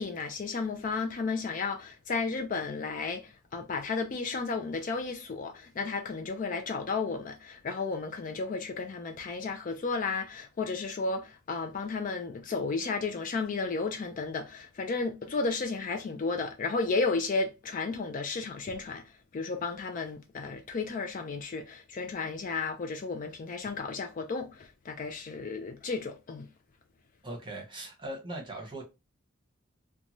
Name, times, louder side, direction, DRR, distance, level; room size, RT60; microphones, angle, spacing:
voice 1, 0.0-19.0 19.3-26.5, left 4 dB, 40° left, 0.4 m, -33 dB
voice 2, 27.2-28.8, right 1 dB, 25° right, 0.9 m, -39 dB
2.6 x 2.2 x 3.0 m
head